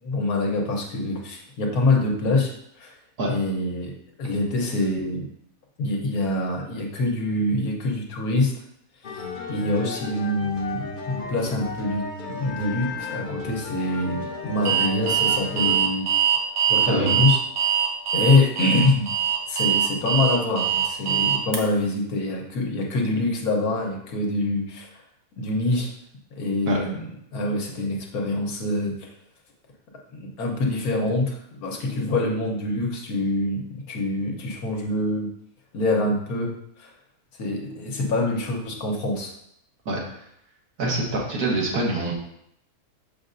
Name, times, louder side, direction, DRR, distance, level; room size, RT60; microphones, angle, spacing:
voice 1, 0.0-2.5 2.8-2.9 3.3-3.9 4.2-5.3 5.8-8.5 9.1-16.1 16.7-17.4 18.1-19.1 19.5-24.9 25.4-25.9 26.4-27.1 27.3-28.9 30.1-35.3 35.7-36.5 36.8-36.9 37.4-39.3 40.9-41.0, left 2 dB, 75° left, 1 dB, 1.5 m, -25 dB
sound 1, 9.0-15.8, left 4 dB, 45° left, 0.6 m, -34 dB
Alarm, 14.7-21.6, right 8 dB, 60° right, 1.1 m, -22 dB
voice 2, 16.9-17.2 26.7-26.8 39.9-40.0 40.8-42.1, right 2 dB, 85° right, -2 dB, 1.8 m, -25 dB
6.5 x 5.6 x 2.6 m, 0.75 s
omnidirectional pair, 1.6 m